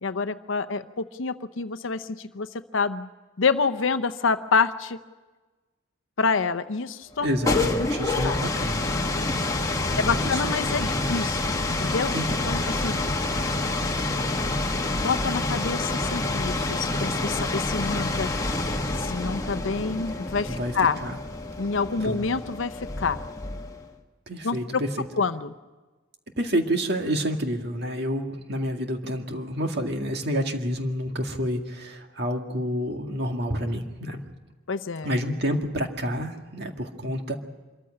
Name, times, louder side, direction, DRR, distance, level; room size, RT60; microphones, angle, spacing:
voice 1, 0.0-3.1 3.4-5.0 6.2-7.3 7.8-7.9 8.2-8.4 10.0-12.1 12.4-13.1 15.0-18.3 19.0-21.0 21.6-23.2 24.4-24.8 25.2-25.5 34.7-35.1, left 4 dB, 70° left, 9 dB, 0.7 m, -27 dB
sound 1, 7.2-23.9, left 2 dB, 15° left, 1.4 m, -28 dB
voice 2, 7.2-8.8 9.9-10.5 12.1-12.5 20.5-20.7 21.0-21.2 22.0-22.2 24.3-25.1 26.4-34.2 35.0-37.4, equal, 50° right, 4 dB, 2.1 m, -29 dB
25.0 x 14.5 x 10.0 m, 1.2 s
head